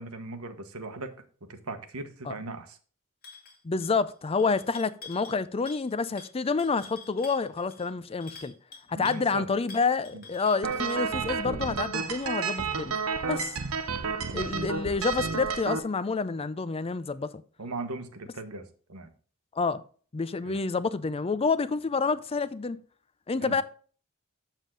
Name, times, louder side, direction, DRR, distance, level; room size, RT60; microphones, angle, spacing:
voice 1, 0.0-2.8 8.9-9.5 10.1-10.2 14.3-14.5 17.6-19.1 20.4-20.6 23.4-23.6, right 3 dB, 85° right, 1.3 m, -39 dB
sound 1, 3.2-3.6 3.8-4.1 4.4-5.4 5.7-5.9 6.2-9.2 9.7-11.0, left 4 dB, 45° left, 2.2 m, -47 dB
voice 2, 3.6-8.5 8.9-13.0 13.3-13.6 14.3-17.4 19.5-19.8 20.1-22.8 23.3-23.6, left 4 dB, 25° left, 0.5 m, -28 dB
sound 2, 10.6-15.8, right 5 dB, 70° right, 0.8 m, -31 dB
7.3 x 7.3 x 3.8 m
head